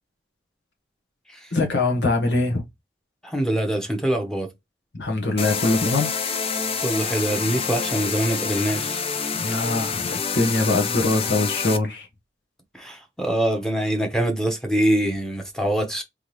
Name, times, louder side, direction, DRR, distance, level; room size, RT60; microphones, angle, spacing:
voice 1, 1.5-2.6 4.9-6.1 9.4-12.1, left 2 dB, 80° left, 1.4 m, -23 dB
voice 2, 3.2-4.5 6.8-9.0 12.7-16.0, right 1 dB, 5° left, 1.0 m, -24 dB
sound 1, 5.4-11.8, left 5 dB, 35° left, 0.5 m, -27 dB
3.7 x 3.4 x 3.1 m
head